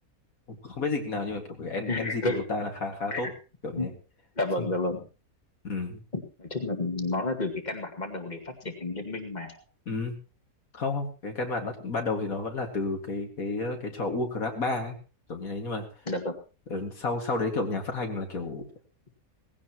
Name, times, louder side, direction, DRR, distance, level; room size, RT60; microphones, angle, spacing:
voice 1, 0.5-3.3 3.6-3.9 5.6-6.0 9.9-10.1 10.7-15.0 15.3-15.8 16.7-18.6, left 3 dB, 70° left, 3 dB, 2.6 m, -31 dB
voice 2, 1.9-2.4 3.1-3.3 3.8-3.9 4.4-5.0 6.1-9.5 16.1-16.4, left 2 dB, 30° left, 3 dB, 2.2 m, -31 dB
18.5 x 16.5 x 3.0 m, 0.33 s
omnidirectional pair, 1.6 m